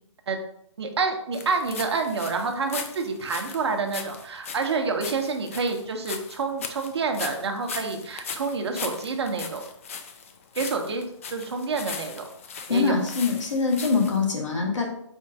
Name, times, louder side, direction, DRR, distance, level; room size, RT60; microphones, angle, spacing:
voice 1, 0.8-9.6 10.5-12.3 12.7-13.0, right 4 dB, 55° right, 4 dB, 0.8 m, -28 dB
sound 1, 1.3-14.2, left 6 dB, 25° left, 0.3 m, -38 dB
voice 2, 12.7-14.9, left 4 dB, 75° left, 0 dB, 1.5 m, -24 dB
4.4 x 2.5 x 4.7 m, 0.73 s
hypercardioid pair, 155°, 16 cm